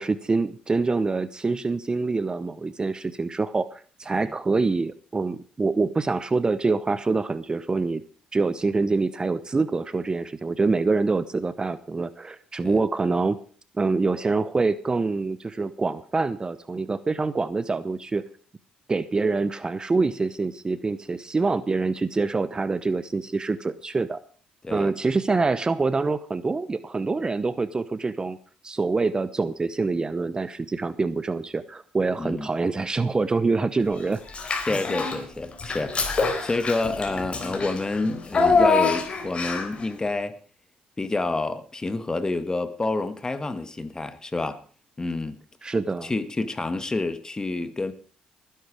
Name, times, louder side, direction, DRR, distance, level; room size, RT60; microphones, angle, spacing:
voice 1, 0.0-8.0 8.3-13.4 13.8-18.3 18.9-24.2 24.7-28.4 28.6-34.2 34.7-34.8 45.6-46.1, right 3 dB, 25° right, 1.0 m, -25 dB
voice 2, 32.2-32.5 34.6-40.4 41.0-44.6 45.0-45.4 46.0-47.9, left 3 dB, 25° left, 1.8 m, -28 dB
Child speech kid speaking / Bathtub (filling or washing), 34.3-35.2 35.6-39.8, left 4 dB, 40° left, 3.8 m, -25 dB
19.5 x 10.5 x 5.0 m
supercardioid pair, 70°, 3 cm